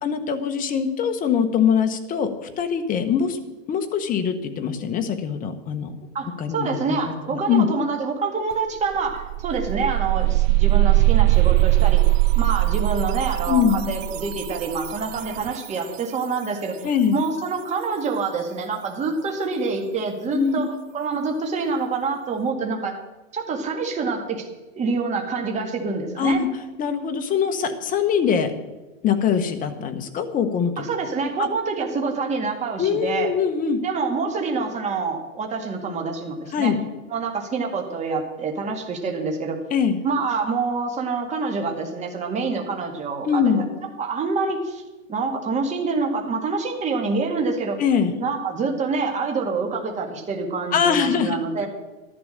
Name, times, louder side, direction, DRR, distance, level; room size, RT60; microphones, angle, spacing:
voice 1, 0.0-3.4 3.7-5.9 6.4-7.7 13.5-13.9 16.8-17.2 20.3-20.6 26.2-26.5 26.8-28.5 29.0-30.8 31.4-31.5 32.8-33.8 36.5-36.8 39.7-40.0 43.2-43.6 47.8-48.2 50.7-51.7, left 7 dB, 20° left, 7 dB, 1.2 m, -22 dB
voice 2, 6.1-12.0 12.4-16.8 17.1-23.0 23.3-24.5 24.7-26.4 30.8-33.3 33.8-36.8 37.1-39.6 40.0-43.6 44.0-44.8 45.1-47.8 48.2-51.7, right 4 dB, 20° right, 2 dB, 2.0 m, -26 dB
sound 1, 8.5-8.6 8.9-15.7, right 19 dB, 80° right, 0.6 m, -20 dB
13.5 x 11.0 x 6.6 m, 1.1 s
supercardioid pair, 150°, 38 cm